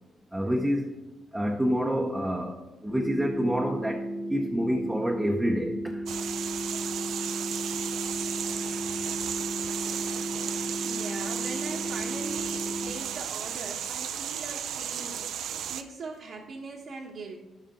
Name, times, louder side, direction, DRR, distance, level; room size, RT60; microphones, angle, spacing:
voice 1, 0.3-0.9 1.3-6.0, equal, 5° right, 0 dB, 0.8 m, -28 dB
sound 1, 2.9-12.9, right 1 dB, 10° left, 1.1 m, -34 dB
sound 2, 6.1-15.8, right 9 dB, 75° right, 0.5 m, -34 dB
voice 2, 10.3-17.4, right 3 dB, 60° right, -4 dB, 1.1 m, -41 dB
11.0 x 5.6 x 3.7 m, 1.1 s
cardioid pair, 90°, 0 cm